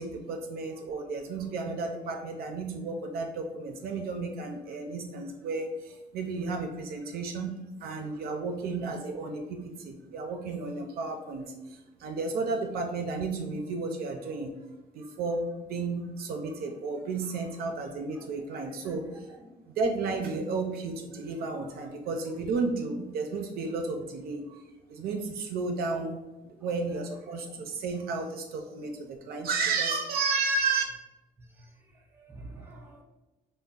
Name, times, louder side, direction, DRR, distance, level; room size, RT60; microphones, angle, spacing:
voice 1, 0.0-14.5 14.9-19.1 19.8-24.6 24.9-26.2 26.6-30.8, right 3 dB, 65° right, 4 dB, 0.4 m, -32 dB
voice 2, 17.9-18.3 18.7-19.5 21.6-21.9 26.5-27.0 31.4-33.0, right 2 dB, 15° right, 1 dB, 0.6 m, -51 dB
2.3 x 2.1 x 3.7 m, 1.1 s
cardioid pair, 110°, 17 cm